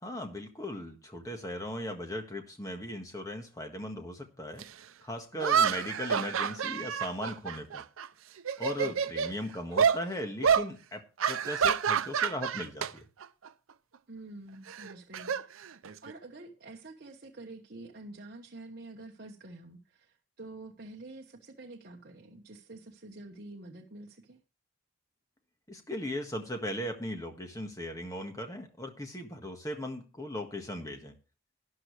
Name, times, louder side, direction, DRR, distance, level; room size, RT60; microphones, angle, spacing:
voice 1, 0.0-4.7 5.0-7.8 8.6-13.0 25.7-31.1, left 1 dB, 15° left, 4 dB, 1.6 m, -38 dB
sound 1, 4.6-4.7 5.4-8.1 8.4-9.3 9.8-10.0 10.4-10.7 11.2-12.9 13.2-13.5 14.7-16.1, right 7 dB, 85° right, 0.5 m, -28 dB
voice 2, 14.1-24.4, right 2 dB, 50° right, 0 dB, 1.1 m, -48 dB
12.5 x 10.0 x 3.3 m, 0.34 s
head